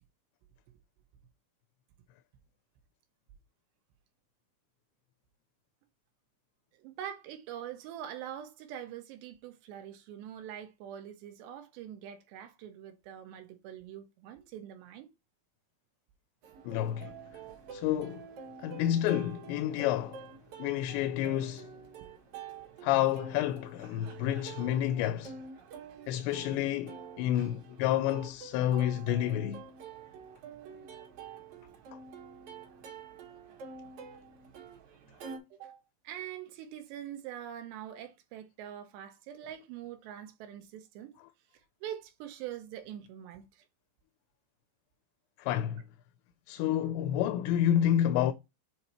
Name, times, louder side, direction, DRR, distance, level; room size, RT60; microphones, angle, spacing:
voice 1, 6.8-15.1 35.5-41.1 41.8-43.6, right 10 dB, 80° right, 3.0 m, -44 dB
Plucked string instrument, 16.4-35.4, right 5 dB, 60° right, 3.2 m, -48 dB
voice 2, 16.6-17.1 17.7-18.3 18.6-20.2 20.6-21.7 22.8-25.4 26.1-29.6 45.4-45.8 46.5-48.3, left 11 dB, 85° left, 2.7 m, -29 dB
7.9 x 2.8 x 4.3 m
omnidirectional pair, 5.1 m